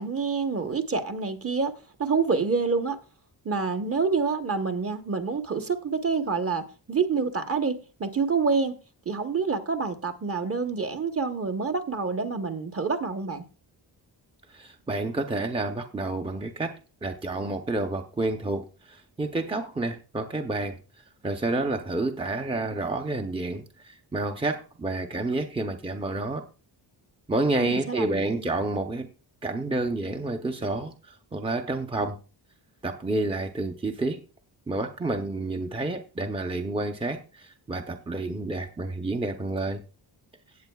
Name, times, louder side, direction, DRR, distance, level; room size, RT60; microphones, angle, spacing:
voice 1, 0.0-3.0 3.4-8.8 9.0-13.4 27.6-28.5, right 5 dB, 30° right, 1.0 m, -27 dB
voice 2, 14.5-20.8 21.2-26.4 27.3-29.1 29.4-32.2 32.8-34.2 34.7-39.8, right 2 dB, 15° right, 0.6 m, -29 dB
17.0 x 8.0 x 2.3 m
wide cardioid pair, 175°, 44 cm